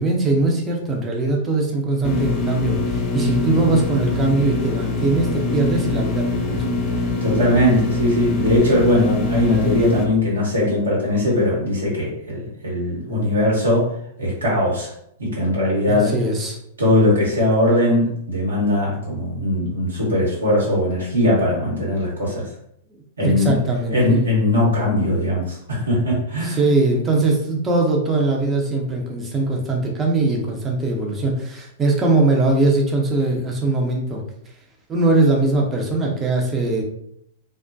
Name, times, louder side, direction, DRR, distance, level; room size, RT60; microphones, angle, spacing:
voice 1, 0.0-6.8 15.9-16.6 23.2-24.2 26.4-34.2 34.9-36.8, right 2 dB, 20° right, 0 dB, 0.7 m, -21 dB
sound 1, 2.0-10.0, left 2 dB, 40° left, 0.5 m, -23 dB
voice 2, 7.2-13.9 14.2-14.9 15.2-16.1 16.8-22.5 23.2-23.6 23.9-26.6, left 1 dB, 80° right, -5 dB, 1.1 m, -20 dB
2.2 x 2.1 x 2.6 m, 0.72 s
figure-of-eight pair, 100°, 0 cm